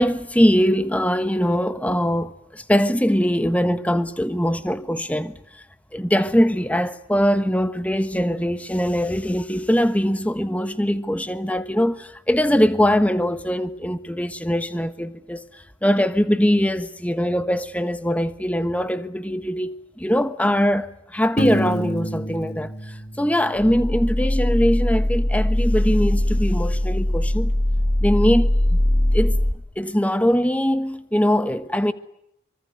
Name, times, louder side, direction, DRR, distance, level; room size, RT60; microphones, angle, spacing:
voice 1, 0.0-5.6 5.9-27.5 28.0-28.8 29.1-29.4 29.8-31.9, equal, 5° left, 1.3 m, -22 dB
Piano, 21.4-24.1, equal, 55° left, 2.1 m, -29 dB
sound 1, 23.6-29.5, left 1 dB, 25° left, 1.9 m, -21 dB
24.5 x 24.5 x 9.3 m
head